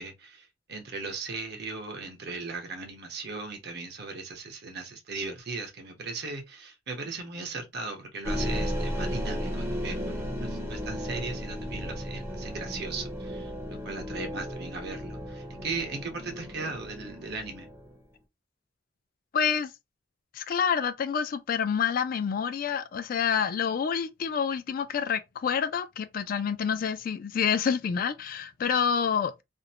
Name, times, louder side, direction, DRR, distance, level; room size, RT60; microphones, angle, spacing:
voice 1, 0.0-17.7, right 3 dB, 65° right, 0.9 m, -38 dB
sound 1, 8.2-18.0, equal, 15° right, 0.6 m, -34 dB
voice 2, 19.3-19.7 20.3-29.4, left 7 dB, 50° left, 0.3 m, -28 dB
2.5 x 2.0 x 2.7 m
head